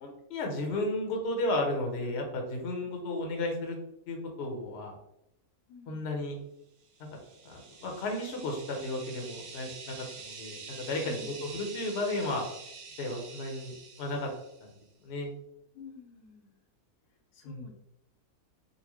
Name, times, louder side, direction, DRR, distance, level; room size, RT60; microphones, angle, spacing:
voice 1, 0.0-3.8 4.1-4.9 5.9-6.4 7.4-12.4 13.0-13.7 14.0-14.3 15.0-15.3 17.4-17.6, left 2 dB, 55° left, 1 dB, 0.8 m, -33 dB
voice 2, 5.7-6.0 11.0-11.3 15.7-16.5 17.3-17.7, left 5 dB, 85° left, 1 dB, 1.2 m, -49 dB
sound 1, 6.9-14.7, right 5 dB, 65° right, 0.8 m, -47 dB
4.0 x 2.2 x 2.9 m, 0.80 s
omnidirectional pair, 1.6 m